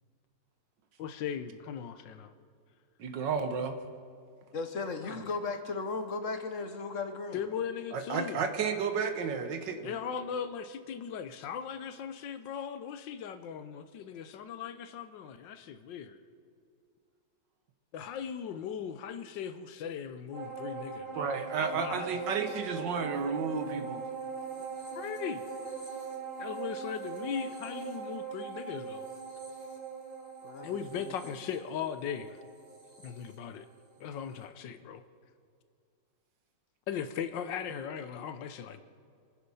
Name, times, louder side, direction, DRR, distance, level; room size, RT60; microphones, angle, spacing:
voice 1, 1.0-2.3 5.0-5.2 7.3-8.4 9.8-16.2 17.9-22.1 24.9-25.4 26.4-29.1 30.6-32.4 33.0-33.7 34.0-35.0 36.9-38.8, left 8 dB, 80° left, 11 dB, 1.5 m, -38 dB
voice 2, 3.0-3.8 7.9-9.9 21.2-24.0 24.6-24.7, right 5 dB, 75° right, 8 dB, 1.8 m, -32 dB
voice 3, 4.5-7.4 30.4-30.7 31.0-31.1, left 4 dB, 50° left, 7 dB, 1.2 m, -36 dB
sound 1, 20.3-34.0 34.4-34.5, right 5 dB, 30° right, 2.8 m, -41 dB
26.5 x 9.9 x 5.6 m, 2.4 s
omnidirectional pair, 2.0 m